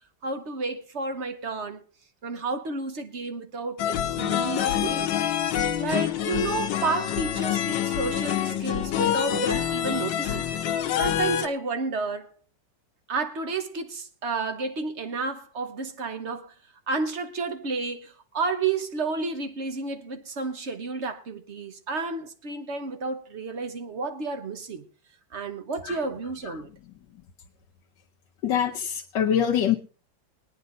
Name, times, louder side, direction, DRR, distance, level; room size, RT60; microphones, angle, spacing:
voice 1, 0.2-1.8 2.2-5.1 5.8-10.5 10.9-12.3 13.1-16.5 16.9-24.9 25.3-26.7, right 3 dB, 45° right, 1.2 m, -31 dB
sound 1, 3.8-11.5, left 10 dB, 90° left, 1.6 m, -26 dB
voice 2, 28.4-29.8, left 9 dB, 75° left, 1.5 m, -24 dB
21.0 x 9.5 x 3.9 m
omnidirectional pair, 2.0 m